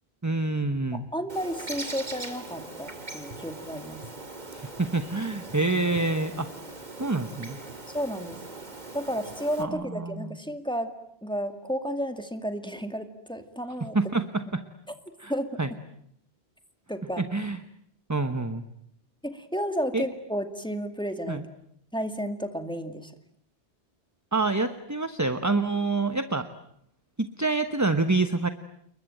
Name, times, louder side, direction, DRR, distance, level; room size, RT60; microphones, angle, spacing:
voice 1, 0.2-1.0 4.5-6.5 7.0-7.6 9.6-10.4 13.9-14.6 15.2-15.3 15.6-15.7 17.2-17.6 18.1-18.7 19.9-20.0 21.3-21.4 24.3-26.5 27.2-28.5, right 3 dB, 15° right, 10 dB, 1.0 m, -27 dB
voice 2, 0.9-4.0 7.9-8.4 8.9-10.9 11.2-14.0 15.3-15.6 16.9-17.2 19.2-21.4 21.9-23.1, equal, 5° left, 7 dB, 2.2 m, -32 dB
Bird, 1.3-9.6, right 2 dB, 40° right, 2.6 m, -41 dB
29.5 x 22.5 x 9.0 m, 0.71 s
omnidirectional pair, 1.1 m